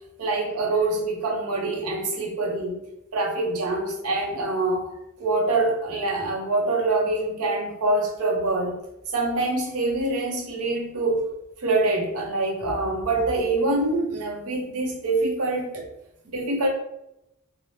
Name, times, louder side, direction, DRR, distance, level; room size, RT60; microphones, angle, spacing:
voice 1, 0.2-2.8 3.1-4.9 5.2-8.8 9.1-11.2 11.6-15.9 16.3-16.7, right 2 dB, 80° right, 1 dB, 0.7 m, -25 dB
3.0 x 2.0 x 2.7 m, 0.86 s
head